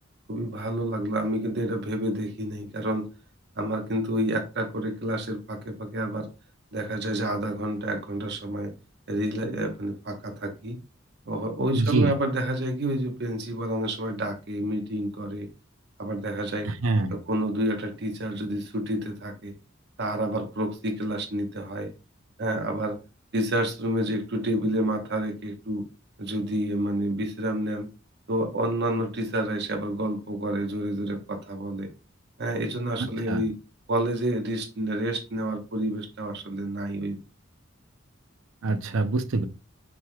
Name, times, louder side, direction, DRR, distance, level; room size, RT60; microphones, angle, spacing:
voice 1, 0.3-3.1 3.6-6.3 6.7-8.7 9.1-10.8 11.3-15.5 16.0-16.7 17.1-19.5 20.0-21.9 22.4-23.0 23.3-25.8 26.2-27.9 28.3-31.9 32.4-33.6 33.9-37.2, right 1 dB, 60° right, 4 dB, 0.9 m, -29 dB
voice 2, 11.7-12.1 16.6-17.2 33.0-33.5 38.6-39.5, right 2 dB, 85° right, 10 dB, 0.6 m, -25 dB
5.9 x 3.4 x 2.2 m, 0.31 s
head